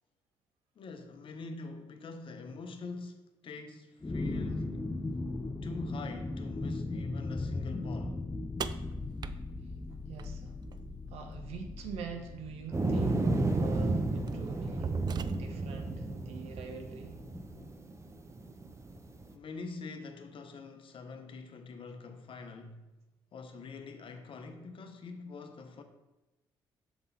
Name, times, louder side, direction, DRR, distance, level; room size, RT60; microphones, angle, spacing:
voice 1, 0.8-4.8 5.6-8.2 19.3-22.9 23.3-25.8, left 4 dB, 55° left, 0.8 m, -45 dB
sound 1, 4.0-17.7, left 2 dB, 20° left, 0.7 m, -39 dB
sound 2, 8.6-10.8 12.6-12.7 13.6-13.8 14.3-15.8, right 6 dB, 40° right, 0.3 m, -39 dB
voice 2, 10.1-10.5 11.1-14.9 15.4-17.1, right 6 dB, 75° right, 0.8 m, -45 dB
sound 3, 12.7-19.3, right 2 dB, 25° right, 0.7 m, -32 dB
6.9 x 3.7 x 4.1 m
supercardioid pair, 55°, 11 cm